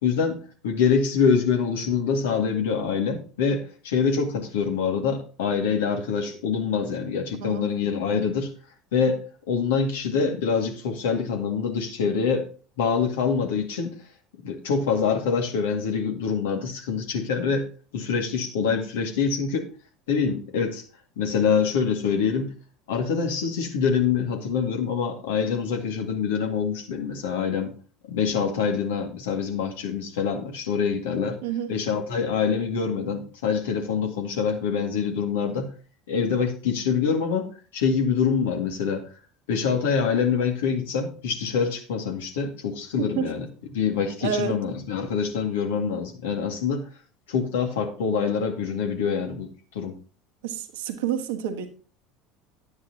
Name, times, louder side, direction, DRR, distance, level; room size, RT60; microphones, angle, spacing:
voice 1, 0.0-8.5 8.9-12.5 12.8-14.0 14.4-19.7 20.1-20.8 21.2-22.5 22.9-27.7 28.1-31.4 31.7-35.7 36.1-39.1 39.5-43.5 43.7-46.9 47.3-49.5 49.7-50.0, left 6 dB, 70° left, 2.1 m, -25 dB
voice 2, 31.4-31.8 43.0-43.3 44.2-44.6 50.4-51.7, right 8 dB, 65° right, 1.4 m, -29 dB
11.0 x 9.5 x 2.9 m
figure-of-eight pair, 70°, 0 cm